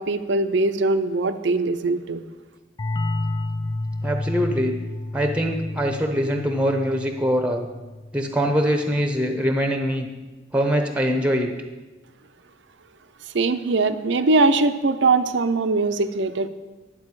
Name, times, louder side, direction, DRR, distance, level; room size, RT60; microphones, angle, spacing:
voice 1, 0.0-2.2 13.3-16.5, right 3 dB, 70° right, 10 dB, 0.6 m, -21 dB
sound 1, 2.8-8.2, left 2 dB, 20° left, 0.3 m, -30 dB
voice 2, 4.0-4.7 5.1-7.7 8.1-10.1 10.5-11.5, equal, 5° right, 4 dB, 0.7 m, -23 dB
10.5 x 7.6 x 4.8 m, 1.2 s
head